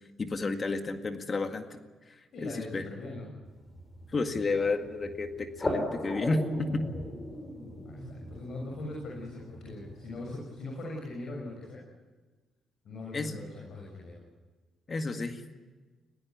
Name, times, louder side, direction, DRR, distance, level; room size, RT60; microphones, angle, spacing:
voice 1, 0.2-1.8 2.1-2.9 4.1-6.9 13.1-13.4 14.9-15.4, left 3 dB, 35° left, 6 dB, 1.9 m, -31 dB
voice 2, 2.3-3.3 7.8-11.8 12.8-14.2, left 2 dB, 60° left, -2 dB, 7.0 m, -41 dB
sound 1, 3.4-10.4, left 1 dB, 20° left, 6.2 m, -38 dB
20.5 x 19.0 x 9.7 m, 1.3 s
cardioid pair, 90°, 0 cm